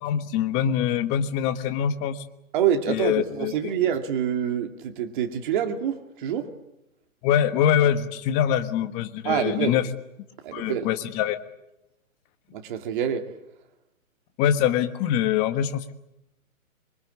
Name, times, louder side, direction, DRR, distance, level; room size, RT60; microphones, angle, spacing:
voice 1, 0.0-2.2 2.9-3.5 7.2-9.9 10.5-11.4 14.4-15.9, left 9 dB, 15° left, 1.3 m, -24 dB
voice 2, 2.5-6.5 9.2-9.8 10.4-10.9 12.5-13.3, right 9 dB, 35° right, 2.6 m, -26 dB
26.5 x 23.5 x 8.5 m
hypercardioid pair, 160°, 42 cm